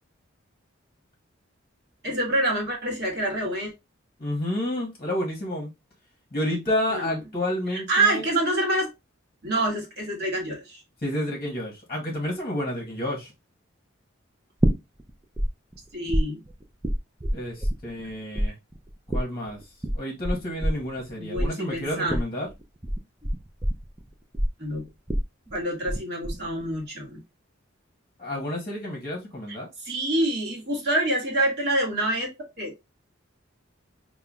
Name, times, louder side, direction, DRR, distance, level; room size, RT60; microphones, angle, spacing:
voice 1, 2.0-3.7 6.9-7.2 7.7-8.9 9.4-10.8 15.9-16.4 21.2-22.2 24.6-24.8 25.5-27.2 29.8-32.3 32.6-32.7, right 1 dB, 50° right, 1.6 m, -26 dB
voice 2, 4.2-5.7 6.3-8.2 11.0-13.3 17.3-18.5 19.1-19.6 19.9-22.5 28.2-29.7, left 1 dB, 30° left, 1.0 m, -30 dB
sound 1, 14.6-15.5 15.7-18.1 18.4-26.0 26.2-26.8, equal, 10° right, 0.4 m, -26 dB
5.5 x 2.2 x 2.3 m
head